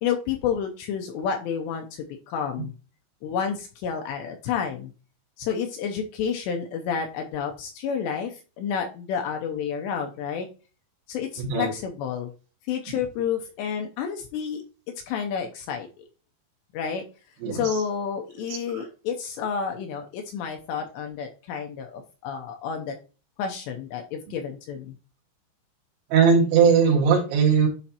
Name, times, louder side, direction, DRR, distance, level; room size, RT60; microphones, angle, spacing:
voice 1, 0.0-2.7 3.2-4.9 5.4-10.5 11.1-12.3 12.7-14.6 15.1-15.9 16.7-17.0 17.5-22.9 23.4-24.9, left 7 dB, 80° left, 4 dB, 2.6 m, -30 dB
voice 2, 11.4-11.7 12.9-13.0 17.4-17.8 18.5-18.8 26.1-27.7, right 6 dB, 75° right, 1 dB, 4.1 m, -20 dB
11.5 x 4.4 x 2.9 m, 0.35 s
omnidirectional pair, 5.5 m